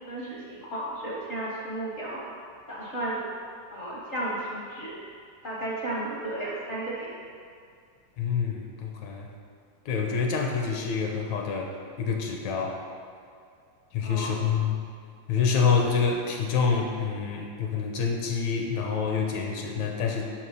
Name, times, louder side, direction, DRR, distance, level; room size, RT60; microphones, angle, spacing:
voice 1, 0.1-2.2 2.7-3.2 3.7-5.0 5.4-7.1 14.0-14.3, right 1 dB, 50° left, -5 dB, 0.7 m, -33 dB
voice 2, 8.2-9.3 9.9-11.7 12.0-12.8 13.9-14.8 15.3-20.3, left 5 dB, 70° left, 1 dB, 2.1 m, -27 dB
7.4 x 6.4 x 5.4 m, 2.2 s
omnidirectional pair, 3.5 m